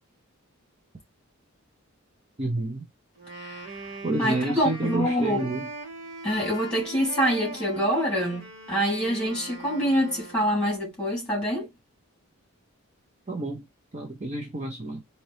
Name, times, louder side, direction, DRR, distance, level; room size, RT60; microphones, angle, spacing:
voice 1, 2.4-2.8 4.0-5.7 13.3-13.6 13.9-15.0, right 2 dB, 30° right, 0.8 m, -29 dB
Wind instrument woodwind instrument, 3.2-10.9, right 2 dB, 50° right, 1.9 m, -41 dB
voice 2, 3.4-5.5 6.2-11.7, equal, 5° left, 2.7 m, -26 dB
4.2 x 2.8 x 3.2 m
head